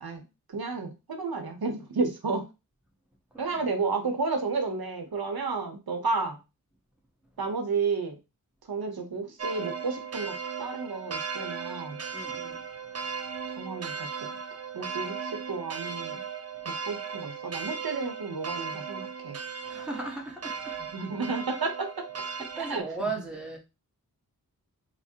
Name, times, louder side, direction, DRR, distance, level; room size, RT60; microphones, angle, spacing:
voice 1, 0.0-2.5 3.4-6.4 7.4-8.2 8.7-12.0 13.5-16.2 16.6-19.4 20.9-22.1 22.6-23.1, right 4 dB, 75° right, 0.8 m, -32 dB
sound 1, 9.4-22.8, right 5 dB, 45° right, 0.5 m, -37 dB
voice 2, 12.1-12.6 19.6-20.8 22.6-23.6, right 3 dB, ahead, 1.3 m, -36 dB
4.6 x 2.1 x 4.4 m
wide cardioid pair, 65°, 37 cm